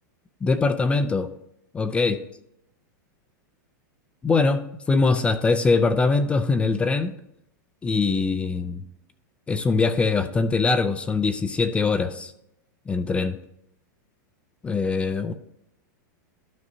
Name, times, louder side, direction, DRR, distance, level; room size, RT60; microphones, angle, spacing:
voice 1, 0.4-1.3 1.7-2.2 4.2-4.6 4.9-7.1 7.8-8.8 9.5-12.3 12.9-13.4 14.6-15.3, left 4 dB, 10° left, 10 dB, 0.3 m, -22 dB
12.5 x 5.3 x 2.8 m, 0.77 s
supercardioid pair, 150°, 10 cm